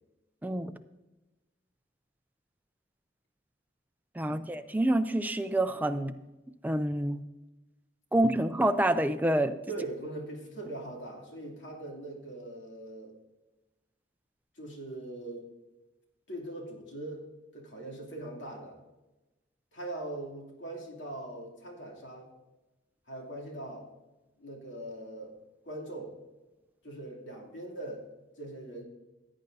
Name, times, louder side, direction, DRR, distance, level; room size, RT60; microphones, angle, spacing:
voice 1, 0.4-0.7 4.2-6.1 6.6-7.2 8.1-9.6, right 1 dB, 10° right, 9 dB, 0.3 m, -27 dB
voice 2, 9.7-13.1 14.5-15.5 16.3-18.8 19.7-22.3 23.1-23.9 24.4-25.4 25.6-26.2 26.8-28.1 28.4-28.8, right 1 dB, 75° left, -1 dB, 2.7 m, -41 dB
16.0 x 9.0 x 2.7 m, 1.1 s
head